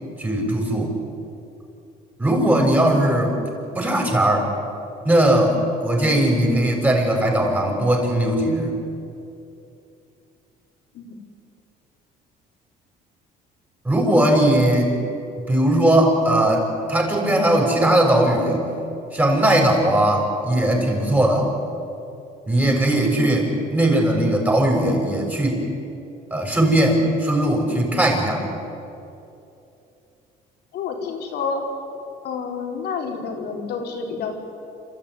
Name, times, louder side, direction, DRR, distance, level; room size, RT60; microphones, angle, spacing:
voice 1, 0.2-0.9 2.2-3.3 3.7-4.5 5.0-8.8 13.8-14.9 15.5-18.6 19.1-21.5 22.5-25.6 26.3-28.4, right 1 dB, 10° right, 0 dB, 6.5 m, -19 dB
voice 2, 30.7-31.6 32.2-34.4, left 5 dB, 75° left, 2 dB, 4.2 m, -29 dB
29.5 x 14.0 x 9.7 m, 2.8 s
cardioid pair, 110°, 17 cm